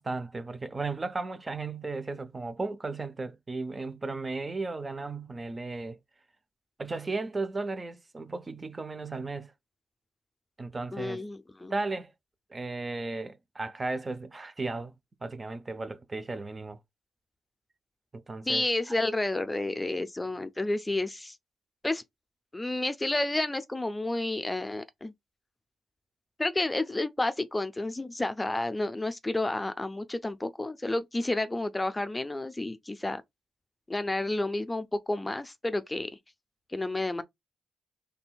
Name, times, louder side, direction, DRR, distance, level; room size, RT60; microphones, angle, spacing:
voice 1, 0.0-6.0 6.8-9.5 10.6-11.2 11.7-12.1 12.5-14.9 15.2-16.8 18.1-18.6, right 3 dB, 30° right, 0.6 m, -35 dB
voice 2, 10.9-11.7 18.5-21.4 21.8-22.0 22.5-25.1 26.4-33.2 33.9-36.1 36.7-37.2, left 2 dB, 15° left, 0.5 m, -30 dB
4.2 x 3.3 x 2.2 m
cardioid pair, 70°, 0 cm